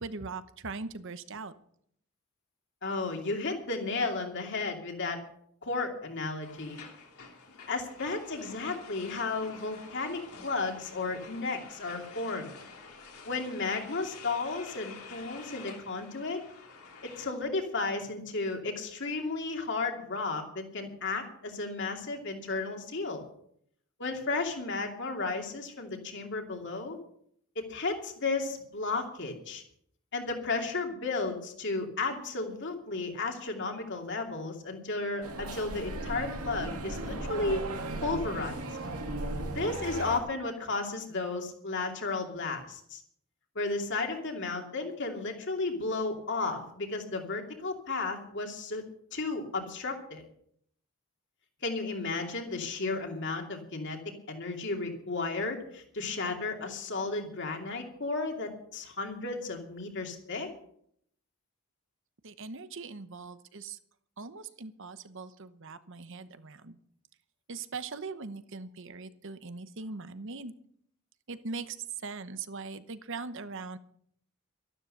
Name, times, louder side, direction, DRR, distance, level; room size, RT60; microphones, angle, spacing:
voice 1, 0.0-1.5 62.2-63.8 64.2-66.8 67.5-70.5 71.3-73.8, right 4 dB, 55° right, 12 dB, 0.9 m, -40 dB
voice 2, 2.8-5.2 5.6-6.8 7.7-12.5 13.2-16.4 17.0-23.2 24.0-27.0 27.6-29.6 30.1-37.6 38.0-38.7 39.5-43.0 43.5-48.8 49.1-50.2 51.6-54.0 54.3-60.5, left 3 dB, 55° left, 3 dB, 2.7 m, -33 dB
sound 1, 6.4-17.3, left 4 dB, 75° left, 3.0 m, -49 dB
sound 2, 35.2-40.2, right 2 dB, 80° right, 2.1 m, -36 dB
13.0 x 12.0 x 6.7 m, 0.68 s
head